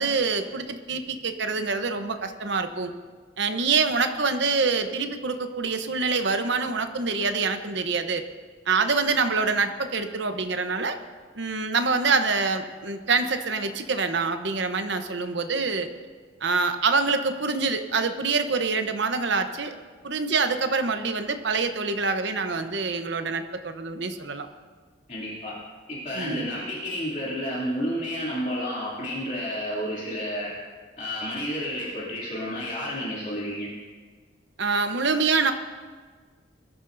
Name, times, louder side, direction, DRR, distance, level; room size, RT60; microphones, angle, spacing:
voice 1, 0.0-2.9 3.4-8.2 8.7-11.0 11.3-15.9 16.4-19.7 20.0-24.5 26.1-26.5 34.6-35.5, right 4 dB, 65° right, 7 dB, 0.9 m, -25 dB
voice 2, 25.1-25.5 25.9-30.5 31.0-33.7, equal, 40° left, -7 dB, 2.7 m, -31 dB
21.5 x 14.0 x 2.7 m, 1.5 s
head